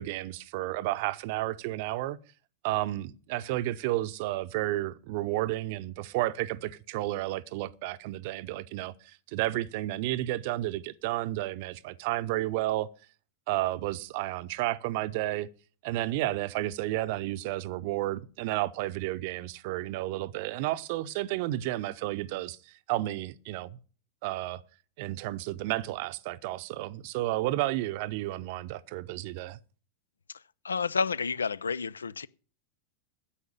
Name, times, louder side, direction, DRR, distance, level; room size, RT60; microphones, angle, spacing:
voice 1, 0.0-2.2 2.6-12.9 13.5-15.5 15.8-23.8 24.2-24.6 25.0-29.6, right 16 dB, 50° right, 0.7 m, -32 dB
voice 2, 30.6-32.3, left 5 dB, 80° left, 0.5 m, -30 dB
10.0 x 7.8 x 8.7 m
figure-of-eight pair, 90°, 0 cm